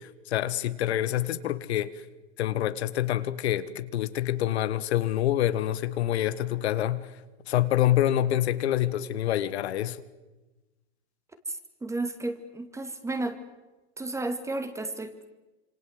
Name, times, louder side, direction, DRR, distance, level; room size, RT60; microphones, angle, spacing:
voice 1, 0.0-1.9 2.4-7.1 7.5-10.0, left 12 dB, 70° left, 12 dB, 1.7 m, -26 dB
voice 2, 11.5-13.4 14.0-15.3, right 2 dB, 10° right, 10 dB, 2.2 m, -33 dB
27.0 x 25.0 x 8.0 m, 1.1 s
hypercardioid pair, 130°, 33 cm